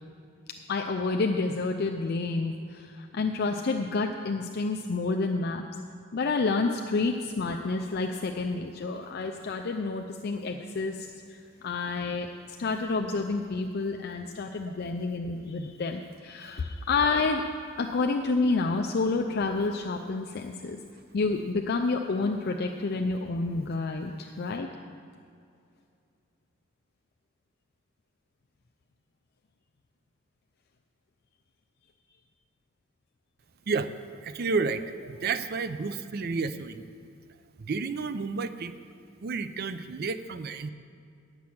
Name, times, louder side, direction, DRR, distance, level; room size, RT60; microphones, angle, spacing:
voice 1, 0.7-5.7 6.1-12.3 12.6-17.4 17.8-20.8 21.1-24.7, left 3 dB, 50° left, 3 dB, 0.5 m, -29 dB
voice 2, 34.2-36.8 37.6-38.7 39.2-40.7, right 4 dB, 50° right, 12 dB, 0.4 m, -31 dB
9.6 x 6.0 x 8.5 m, 2.4 s
head